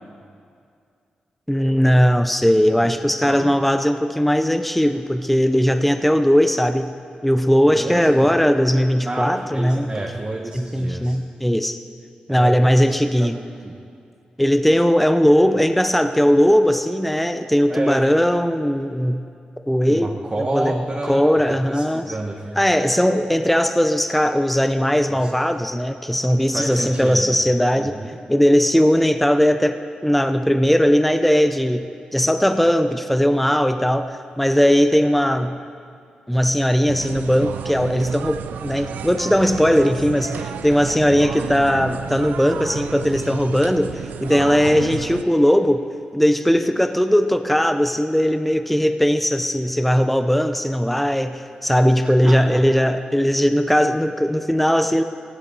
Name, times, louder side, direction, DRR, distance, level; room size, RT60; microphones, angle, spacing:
voice 1, 1.5-6.9 7.2-10.0 10.5-11.8 12.3-13.4 14.4-19.3 19.7-22.1 22.6-28.0 28.3-35.6 36.3-45.9 46.1-55.0, equal, 5° left, 9 dB, 0.7 m, -18 dB
voice 2, 3.2-3.5 7.7-8.3 9.0-11.2 12.3-12.6 12.9-13.8 17.7-18.0 19.9-22.6 25.1-25.3 26.5-27.4 27.7-28.2 52.0-52.6, right 2 dB, 30° right, -1 dB, 1.3 m, -30 dB
sound 1, 36.9-45.2, right 8 dB, 85° right, 0.4 m, -31 dB
15.5 x 11.5 x 4.1 m, 2.3 s
supercardioid pair, 45°, 3 cm